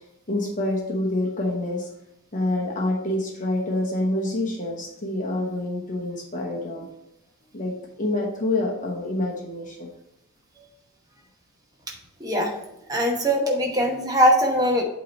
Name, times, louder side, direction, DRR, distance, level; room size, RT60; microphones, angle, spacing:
voice 1, 0.3-1.9 2.3-6.9 7.5-9.9, left 1 dB, 35° left, -1 dB, 0.9 m, -27 dB
voice 2, 12.2-12.5 12.9-14.8, equal, 15° right, 0 dB, 0.9 m, -21 dB
8.2 x 3.0 x 5.2 m, 0.83 s
head